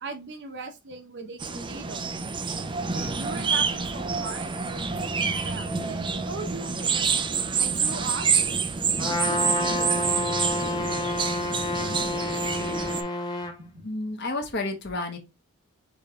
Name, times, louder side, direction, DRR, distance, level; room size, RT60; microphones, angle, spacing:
voice 1, 0.0-2.1 2.9-7.0 7.6-8.3 9.1-10.3 10.6-10.7 13.4-13.8, right 3 dB, 55° right, 1.0 m, -39 dB
sound 1, 1.4-13.0, right 5 dB, 20° right, 0.4 m, -27 dB
Trumpet, 9.0-13.5, left 2 dB, 20° left, 0.8 m, -29 dB
voice 2, 13.8-15.2, left 2 dB, 50° left, 1.1 m, -30 dB
4.3 x 3.2 x 3.6 m
head